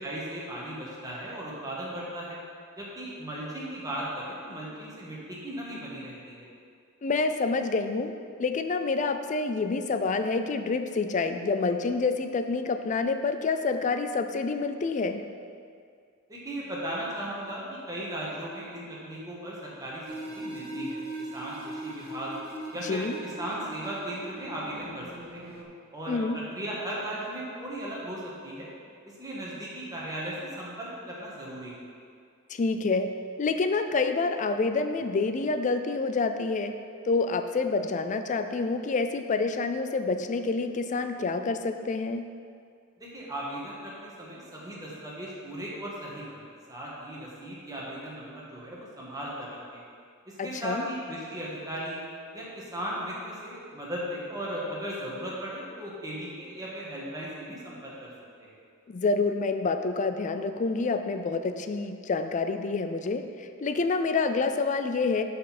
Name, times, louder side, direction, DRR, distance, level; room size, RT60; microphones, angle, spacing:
voice 1, 0.0-2.4 2.8-6.5 16.3-22.3 22.7-25.1 25.3-25.5 25.9-26.2 26.5-28.7 29.0-31.8 43.0-49.8 50.3-52.0 52.3-58.1 58.4-58.6, right 1 dB, 15° right, -5 dB, 1.5 m, -37 dB
voice 2, 7.0-8.1 8.4-15.2 22.8-23.1 26.1-26.4 32.5-33.1 33.4-36.7 37.0-42.3 50.4-50.9 58.9-65.2, left 4 dB, 35° left, 8 dB, 0.4 m, -27 dB
sound 1, 20.0-25.6, right 1 dB, 45° right, 0.9 m, -40 dB
10.5 x 4.3 x 4.2 m, 2.3 s
head